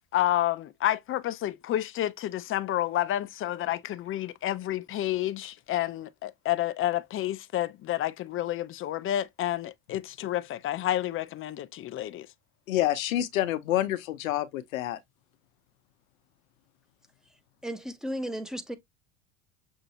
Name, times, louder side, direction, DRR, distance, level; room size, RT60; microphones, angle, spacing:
voice 1, 0.1-12.3, left 13 dB, 35° left, 0.5 m, -30 dB
voice 2, 12.7-15.0, left 13 dB, 90° left, 0.8 m, -28 dB
voice 3, 17.6-18.8, equal, ahead, 0.8 m, -34 dB
6.5 x 2.6 x 2.9 m
supercardioid pair, 95°, 39 cm